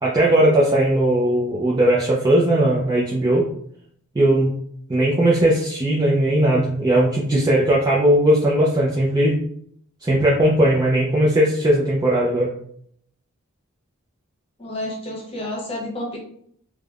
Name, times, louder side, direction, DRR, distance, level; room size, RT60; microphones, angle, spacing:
voice 1, 0.0-3.4 4.1-4.5 4.9-9.4 10.0-12.5, right 1 dB, 20° right, -5 dB, 0.4 m, -18 dB
voice 2, 14.6-16.2, left 1 dB, 25° left, -2 dB, 0.9 m, -30 dB
3.3 x 2.1 x 2.3 m, 0.64 s
head